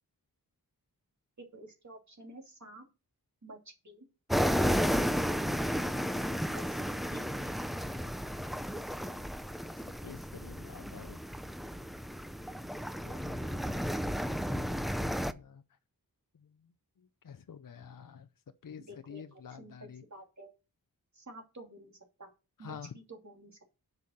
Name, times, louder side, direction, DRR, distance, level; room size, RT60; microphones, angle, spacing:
voice 1, 1.5-2.8 3.4-4.0 6.5-6.8 7.1-7.5 18.9-20.5 21.1-22.3 22.6-23.6, right 1 dB, 50° right, 2.8 m, -50 dB
sound 1, 4.3-15.3, equal, ahead, 0.6 m, -33 dB
voice 2, 10.0-11.2 13.0-13.7 14.5-15.6 17.2-18.3 18.6-20.0 22.6-23.0, left 7 dB, 60° left, 0.7 m, -48 dB
8.4 x 5.6 x 6.4 m
wide cardioid pair, 85°, 37 cm